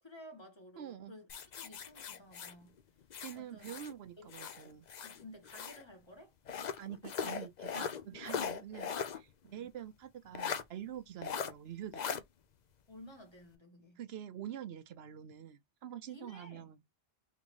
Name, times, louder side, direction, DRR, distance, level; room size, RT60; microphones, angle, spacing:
voice 1, 0.0-1.3 1.6-2.7 3.3-3.7 4.2-4.3 4.6-4.7 5.0-6.3 9.5-9.7 12.9-14.0 16.1-16.7, left 1 dB, 25° left, 1.4 m, -54 dB
voice 2, 0.8-1.1 3.2-4.9 6.8-12.2 14.0-16.8, right 10 dB, 70° right, 0.8 m, -46 dB
sound 1, 1.3-3.9 4.3-5.8 6.5-9.2 9.5-9.6 10.3-10.6 11.2-11.5 11.9-12.2, left 7 dB, 50° left, 0.6 m, -39 dB
3.7 x 3.0 x 3.1 m
omnidirectional pair, 1.2 m